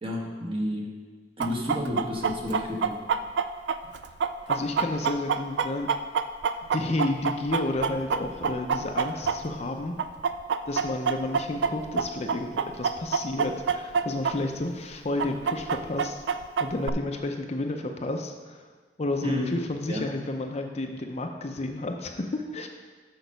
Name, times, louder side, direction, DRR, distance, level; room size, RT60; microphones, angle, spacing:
voice 1, 0.0-0.9 1.4-3.0 19.2-19.5 19.9-20.1, left 1 dB, 30° right, 0 dB, 1.2 m, -31 dB
Chicken rooster, 1.4-9.7 10.0-14.3 14.6-14.7 15.2-16.9, right 6 dB, 80° right, 0.4 m, -26 dB
voice 2, 4.5-5.9 6.7-9.9 10.7-18.7 19.0-22.7, left 2 dB, 40° left, 4 dB, 0.5 m, -31 dB
6.7 x 6.1 x 5.2 m, 1.5 s
head